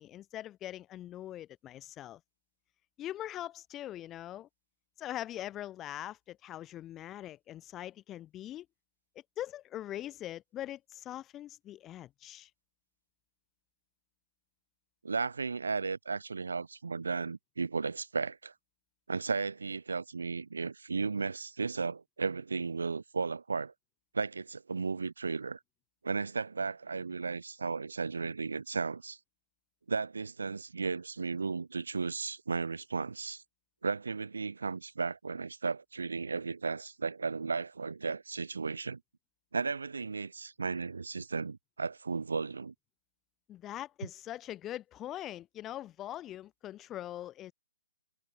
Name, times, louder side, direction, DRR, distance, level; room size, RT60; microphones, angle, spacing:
voice 1, 0.0-2.2 3.0-4.5 5.0-8.7 9.4-12.5 43.5-47.5, left 13 dB, 15° left, 1.1 m, -42 dB
voice 2, 15.0-18.5 19.1-23.7 24.1-25.6 26.0-29.2 29.9-33.4 33.8-39.0 39.5-42.7, right 4 dB, 65° right, 1.2 m, -35 dB
figure-of-eight pair, 130°, 0 cm